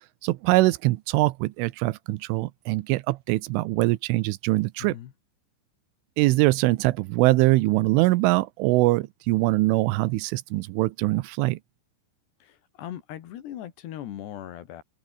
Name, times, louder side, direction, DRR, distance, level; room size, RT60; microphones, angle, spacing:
voice 1, 0.2-5.0 6.2-11.6, right 20 dB, 90° right, 3.2 m, -23 dB
voice 2, 4.8-5.1 12.4-14.8, left 11 dB, 65° left, 3.7 m, -39 dB
open air
omnidirectional pair, 5.6 m